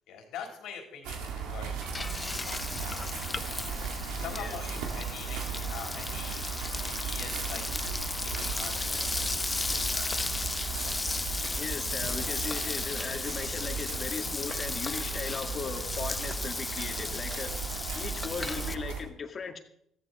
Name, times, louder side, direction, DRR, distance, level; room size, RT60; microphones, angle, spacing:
voice 1, 0.1-6.5 6.8-7.7 8.0-10.2, left 7 dB, 75° left, 2 dB, 3.8 m, -45 dB
sound 1, 1.0-19.0, right 6 dB, 80° right, 2.2 m, -37 dB
Frying (food), 1.5-18.8, left 3 dB, 20° left, 0.7 m, -35 dB
voice 2, 11.6-19.6, left 5 dB, 45° left, 6 dB, 2.0 m, -38 dB
14.5 x 13.5 x 4.3 m, 0.72 s
supercardioid pair, 65°, 0 cm